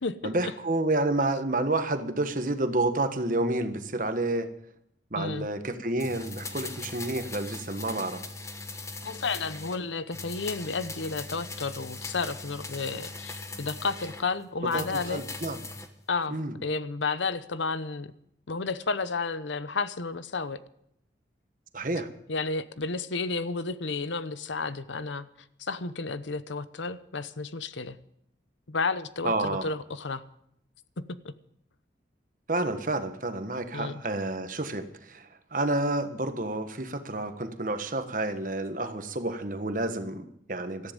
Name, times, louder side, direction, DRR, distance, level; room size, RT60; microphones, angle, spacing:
voice 1, 0.2-4.5 5.1-8.2 14.7-15.6 16.3-16.5 21.7-22.1 29.2-29.7 32.5-40.9, right 2 dB, 45° right, 9 dB, 1.4 m, -29 dB
voice 2, 5.2-5.5 9.0-15.2 16.1-18.1 18.5-20.6 22.3-25.3 25.6-28.0 28.7-30.2 31.0-31.3 33.7-34.0, left 4 dB, 80° left, 14 dB, 0.9 m, -32 dB
sound 1, 6.0-9.8 10.1-14.3 14.7-15.9 16.2-16.3, left 3 dB, 15° left, 1.1 m, -40 dB
18.0 x 13.5 x 5.3 m, 0.74 s
head